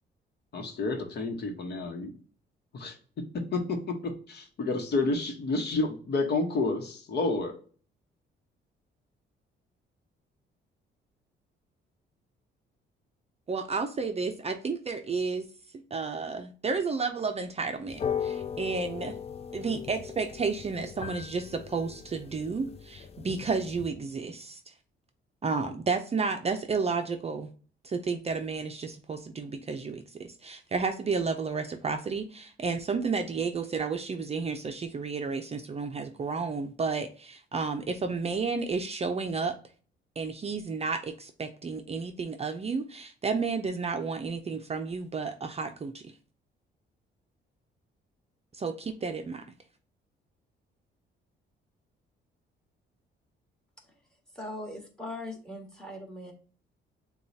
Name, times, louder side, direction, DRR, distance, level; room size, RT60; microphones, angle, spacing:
voice 1, 0.5-2.1 2.7-7.6, left 3 dB, 55° left, 4 dB, 1.0 m, -30 dB
voice 2, 13.5-15.5 15.9-19.2 19.5-24.7 25.4-27.5 27.8-39.6 40.2-46.0 48.5-49.4, right 4 dB, 30° right, 6 dB, 0.5 m, -32 dB
sound 1, 17.9-23.9, left 8 dB, 30° left, 0.4 m, -38 dB
voice 3, 54.3-56.3, left 1 dB, 5° left, 2 dB, 1.6 m, -40 dB
6.8 x 2.3 x 2.7 m, 0.41 s
cardioid pair, 90°, 20 cm